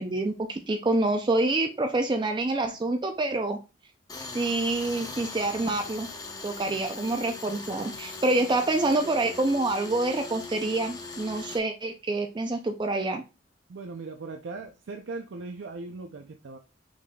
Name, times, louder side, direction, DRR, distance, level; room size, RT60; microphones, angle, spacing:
voice 1, 0.0-3.6 4.3-6.1 6.4-13.2, right 2 dB, 25° right, 5 dB, 0.4 m, -27 dB
Tools, 4.1-11.6, left 3 dB, 20° left, 0.7 m, -40 dB
voice 2, 13.7-16.6, right 3 dB, 90° right, 4 dB, 0.5 m, -39 dB
6.0 x 4.0 x 2.2 m, 0.30 s
head